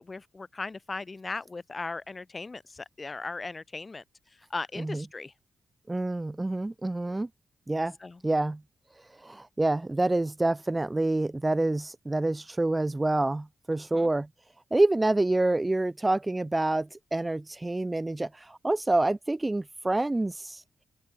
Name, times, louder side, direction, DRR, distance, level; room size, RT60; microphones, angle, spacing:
voice 1, 0.0-4.0 4.5-5.3 8.0-8.2 13.9-14.1, left 3 dB, 30° left, 2.6 m, -37 dB
voice 2, 5.9-7.3 7.7-7.9 8.2-8.6 9.2-14.3 14.7-20.6, right 2 dB, 20° right, 0.8 m, -27 dB
open air
cardioid pair, 70°, 0 cm